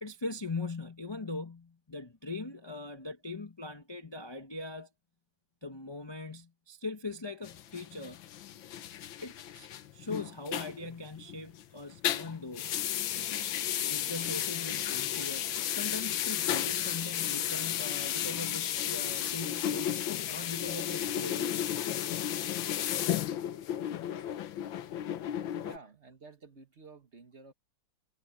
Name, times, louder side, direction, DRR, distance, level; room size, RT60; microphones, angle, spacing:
voice 1, 0.0-4.9 5.6-8.2 9.2-9.7 9.9-12.8 13.9-20.0 20.2-21.7, left 3 dB, 25° left, 0.6 m, -40 dB
sound 1, 7.4-11.6 11.9-25.8, left 11 dB, 85° left, 1.7 m, -33 dB
sound 2, 14.7-15.8 16.1-17.4 17.8-20.5, right 2 dB, 55° right, 8.5 m, -62 dB
voice 2, 25.6-27.5, right 3 dB, 40° right, 1.7 m, -52 dB
omnidirectional pair, 2.1 m